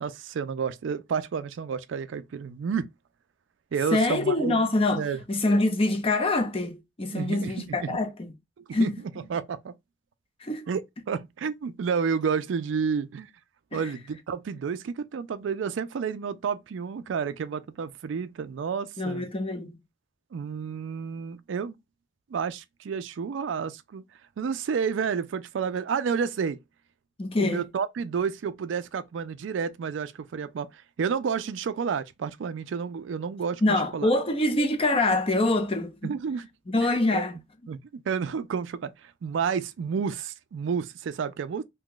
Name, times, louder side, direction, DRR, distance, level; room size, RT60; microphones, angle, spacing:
voice 1, 0.0-2.9 3.7-4.6 5.0-5.2 7.1-7.9 8.7-8.9 9.3-9.7 10.7-10.8 11.1-13.3 13.7-19.3 20.3-21.8 22.3-24.0 24.4-26.6 27.4-34.1 36.0-36.5 37.1-37.2 37.7-41.6, right 6 dB, 85° right, 0.4 m, -30 dB
voice 2, 3.9-8.3 8.7-8.9 10.4-10.7 13.7-13.9 19.0-19.8 27.2-27.7 33.6-36.1 36.7-37.4, left 2 dB, 30° left, 0.6 m, -25 dB
2.8 x 2.3 x 3.7 m
head